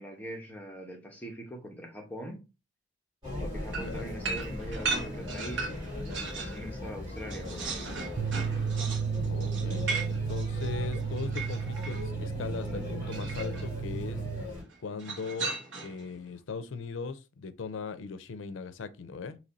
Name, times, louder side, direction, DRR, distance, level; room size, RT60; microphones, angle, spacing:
voice 1, 0.0-2.4 3.4-5.8 6.2-7.9, equal, 10° left, 0.9 m, -42 dB
sound 1, 3.2-14.6, left 1 dB, 25° right, 2.4 m, -39 dB
voice 2, 3.7-4.1 9.2-14.2 14.8-19.4, left 4 dB, 80° left, 0.4 m, -39 dB
sound 2, 3.7-6.6 7.0-12.0 13.1-13.7 15.0-16.0, right 4 dB, 70° right, 1.0 m, -37 dB
sound 3, 8.2-14.4, right 6 dB, 40° right, 0.4 m, -33 dB
4.0 x 2.9 x 4.0 m
head